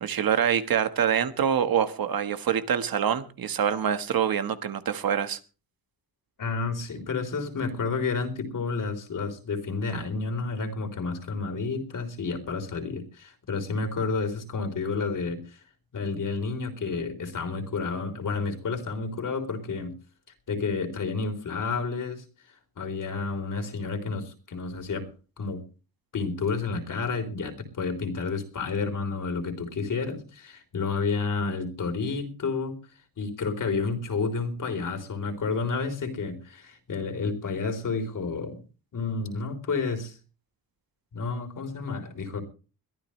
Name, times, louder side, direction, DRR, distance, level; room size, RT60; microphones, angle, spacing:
voice 1, 0.0-5.4, right 8 dB, 70° right, 1.5 m, -25 dB
voice 2, 6.4-15.4 15.9-19.9 20.5-22.2 22.8-25.1 25.4-25.6 26.1-32.8 33.2-38.6 38.9-40.2 41.1-42.4, left 4 dB, 60° left, 3.7 m, -30 dB
22.0 x 13.5 x 3.2 m
wide cardioid pair, 170°, 37 cm